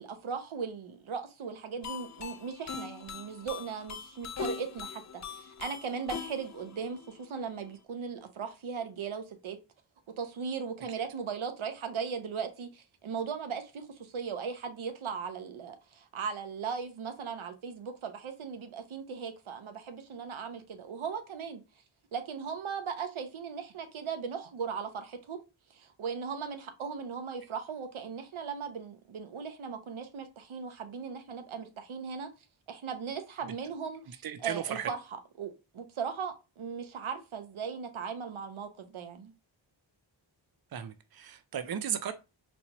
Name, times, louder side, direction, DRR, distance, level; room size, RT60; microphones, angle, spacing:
voice 1, 0.0-9.6 10.2-21.6 22.1-25.4 25.7-32.3 32.7-39.3, right 6 dB, 90° right, 0.7 m, -38 dB
sound 1, 1.8-7.7, left 7 dB, 40° left, 0.4 m, -41 dB
voice 2, 34.2-34.9 40.7-42.1, right 9 dB, 50° right, 0.5 m, -35 dB
4.3 x 2.2 x 2.9 m
wide cardioid pair, 60°, 47 cm